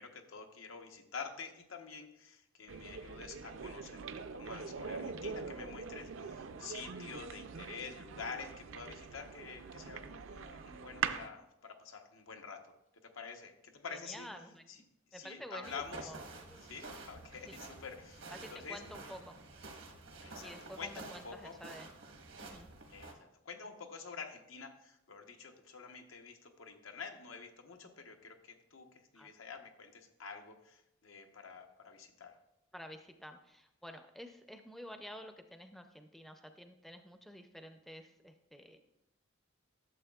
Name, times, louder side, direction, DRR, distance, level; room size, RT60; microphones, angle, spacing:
voice 1, 0.0-14.4 14.7-14.8 15.1-16.2 16.6-18.8 20.2-21.6 22.9-32.4, left 5 dB, 85° left, 4 dB, 0.9 m, -48 dB
sound 1, 2.7-11.3, right 6 dB, 70° right, 0.4 m, -43 dB
voice 2, 13.9-14.7 15.1-16.7 17.5-17.6 18.3-19.4 20.4-21.9 22.4-22.7 29.1-29.3 32.7-38.8, equal, ahead, 6 dB, 0.4 m, -50 dB
sound 2, 15.6-23.1, right 3 dB, 90° right, 1.3 m, -50 dB
12.5 x 7.0 x 2.3 m, 0.85 s
head